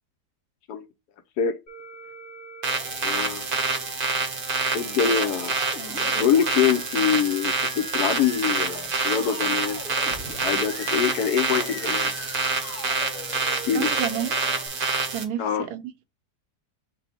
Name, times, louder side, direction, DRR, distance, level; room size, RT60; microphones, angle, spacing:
Musical instrument, 1.7-14.7, left 3 dB, 35° left, 1.2 m, -41 dB
sound 1, 2.6-15.2, right 4 dB, 40° right, 0.8 m, -27 dB
voice 1, 3.0-3.5 4.7-5.6 6.2-10.2 10.4-12.1 13.7-13.9 15.4-15.7, left 8 dB, 70° left, 1.2 m, -25 dB
voice 2, 13.7-14.4 15.1-15.8, right 10 dB, 75° right, 1.0 m, -30 dB
5.9 x 2.1 x 4.2 m
omnidirectional pair, 1.8 m